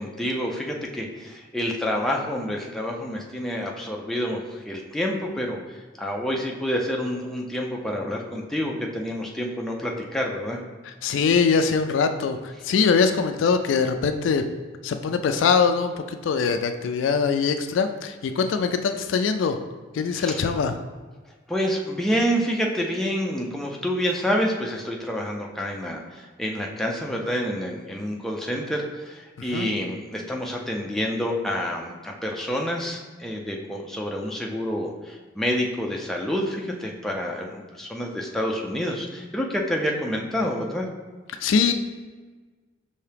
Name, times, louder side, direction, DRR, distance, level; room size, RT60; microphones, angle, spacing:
voice 1, 0.0-10.6 20.1-20.4 21.5-40.9, equal, ahead, -1 dB, 0.4 m, -28 dB
voice 2, 11.0-14.4 14.8-19.6 19.9-20.7 29.4-29.7 41.4-41.7, left 5 dB, 70° left, 8 dB, 0.3 m, -22 dB
5.7 x 2.7 x 3.3 m, 1.4 s
head